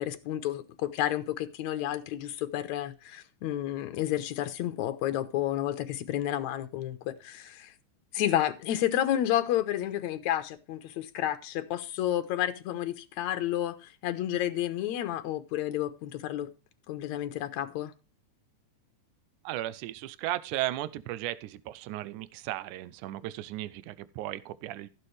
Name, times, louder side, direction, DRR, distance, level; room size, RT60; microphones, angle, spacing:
voice 1, 0.0-7.7 8.1-16.5 16.9-17.9, left 12 dB, 70° left, 2.2 m, -31 dB
voice 2, 19.4-24.9, right 15 dB, 80° right, 2.1 m, -35 dB
15.5 x 7.2 x 3.3 m
omnidirectional pair, 3.6 m